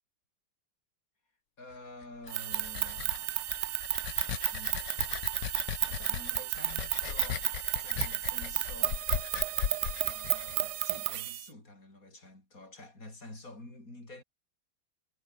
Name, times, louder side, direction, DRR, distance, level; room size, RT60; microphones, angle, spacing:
voice 1, 1.6-3.6 4.5-4.8 5.9-7.4 7.8-9.0 9.9-14.2, left 2 dB, 40° left, 8.4 m, -49 dB
sound 1, 2.0-11.0, left 10 dB, 65° left, 1.6 m, -38 dB
sound 2, 2.3-11.5, right 16 dB, 80° right, 0.8 m, -33 dB
omnidirectional pair, 2.2 m